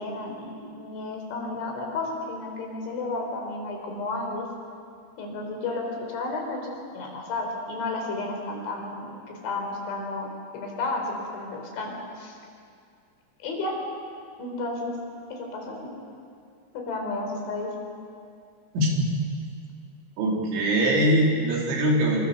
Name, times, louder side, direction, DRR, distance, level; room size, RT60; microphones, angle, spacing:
voice 1, 0.0-4.4 5.2-12.4 13.4-13.8 14.4-15.0 15.3-15.9 16.7-17.7, left 2 dB, 80° left, 2 dB, 6.6 m, -32 dB
voice 2, 20.2-22.2, right 1 dB, 90° right, -1 dB, 6.1 m, -22 dB
28.5 x 24.5 x 6.9 m, 2.3 s
omnidirectional pair, 5.2 m